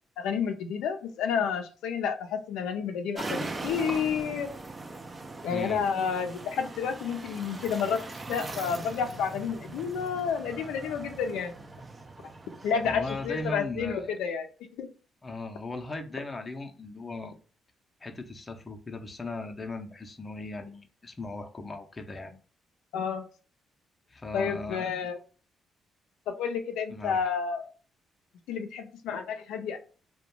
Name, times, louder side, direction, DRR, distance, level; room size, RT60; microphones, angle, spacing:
voice 1, 0.2-4.5 5.4-8.0 8.3-11.6 12.6-14.5 14.8-14.9 22.9-23.3 24.3-25.2 26.3-27.7 28.5-29.8, left 6 dB, 90° left, 0.4 m, -30 dB
sound 1, 3.1-13.5, right 2 dB, 25° right, 0.4 m, -40 dB
voice 2, 5.5-5.8 12.8-14.2 15.2-17.3 18.0-22.3 24.1-24.9 26.9-27.2, left 2 dB, 25° left, 0.5 m, -38 dB
2.4 x 2.1 x 2.9 m
cardioid pair, 90°, 0 cm